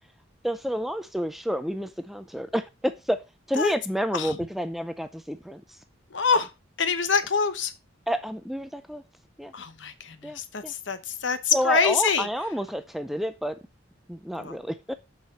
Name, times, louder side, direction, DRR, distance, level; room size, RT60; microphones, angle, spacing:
voice 1, 0.4-3.2 3.5-5.6 8.1-9.0 9.4-9.5 10.2-10.7 11.5-13.6 14.1-14.9, equal, ahead, 0.4 m, -29 dB
voice 2, 6.1-6.5 6.8-7.7 9.5-12.3 14.4-14.6, left 5 dB, 65° left, 1.1 m, -25 dB
7.2 x 5.8 x 4.3 m
head